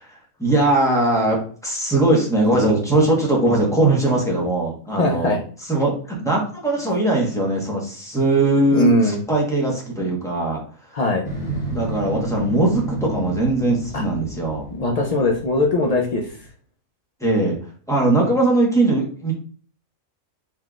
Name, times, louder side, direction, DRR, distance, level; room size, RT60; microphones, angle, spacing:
voice 1, 0.4-5.4 5.7-5.9 6.2-10.6 11.7-14.7 17.2-17.6 17.9-19.3, right 2 dB, 5° left, -2 dB, 1.0 m, -20 dB
voice 2, 5.0-5.4 8.7-9.2 10.9-11.3 13.9-14.0 14.7-16.4, left 1 dB, 80° left, 1 dB, 0.3 m, -20 dB
Motorcycle, 11.2-16.5, right 1 dB, 35° left, 1.1 m, -31 dB
4.3 x 3.7 x 2.4 m, 0.43 s
omnidirectional pair, 1.4 m